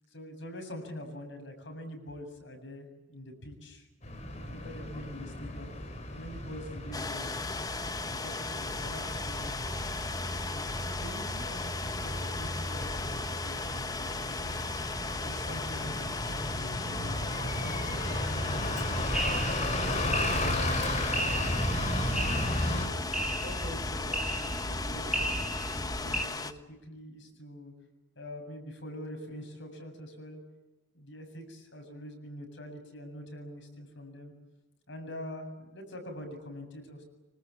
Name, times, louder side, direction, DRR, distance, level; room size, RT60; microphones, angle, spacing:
voice 1, 0.1-3.9 4.4-5.7 6.1-7.3 7.8-9.7 10.5-14.6 15.2-19.4 20.0-22.0 22.6-27.7 28.2-30.4 30.9-34.3 34.9-37.0, left 1 dB, 65° left, 5 dB, 7.6 m, -45 dB
Bus, 4.0-22.9, left 1 dB, 35° left, 4.0 m, -34 dB
sound 1, 6.9-26.5, left 3 dB, 20° left, 1.2 m, -37 dB
sound 2, 19.1-26.2, right 1 dB, 5° right, 3.1 m, -34 dB
26.5 x 25.5 x 8.6 m, 0.99 s
head